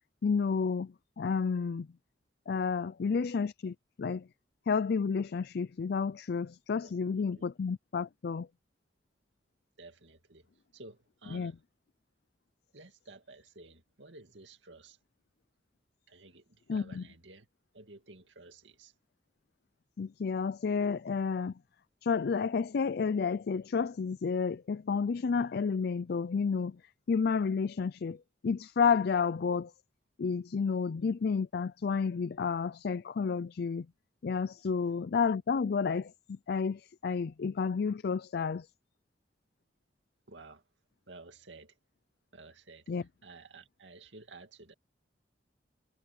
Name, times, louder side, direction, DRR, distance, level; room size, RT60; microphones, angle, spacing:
voice 1, 0.2-0.9 1.2-1.9 2.5-4.2 4.7-8.5 11.3-11.5 16.7-17.0 20.0-21.5 22.0-26.7 27.1-28.2 28.4-29.7 30.2-33.9 34.2-36.1 36.5-38.6 42.9-43.0, left 5 dB, 60° left, 0.4 m, -30 dB
voice 2, 6.8-7.5 9.8-11.6 12.7-15.0 16.1-17.5 17.7-18.9 40.3-40.6 41.1-41.8 42.3-44.7, right 3 dB, 85° right, 2.3 m, -53 dB
head